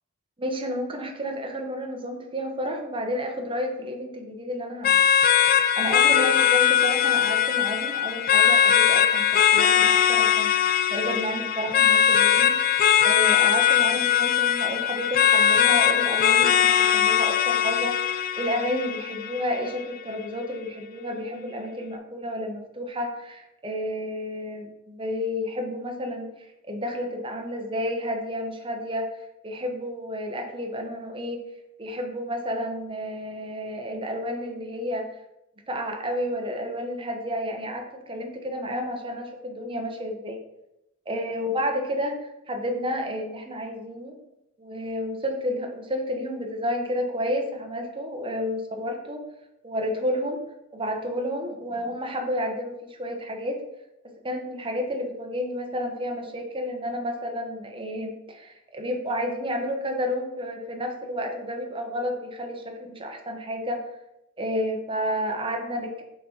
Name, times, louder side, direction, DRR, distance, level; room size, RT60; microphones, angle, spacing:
voice 1, 0.4-5.1 5.5-31.4 31.8-35.1 35.7-40.4 41.1-44.2 44.6-49.2 49.6-50.4 50.7-53.6 54.2-63.8 64.4-66.0, equal, 25° right, 2 dB, 1.0 m, -31 dB
sound 1, 4.8-19.8, left 9 dB, 45° left, 0.3 m, -20 dB
6.4 x 3.9 x 4.4 m, 0.89 s
head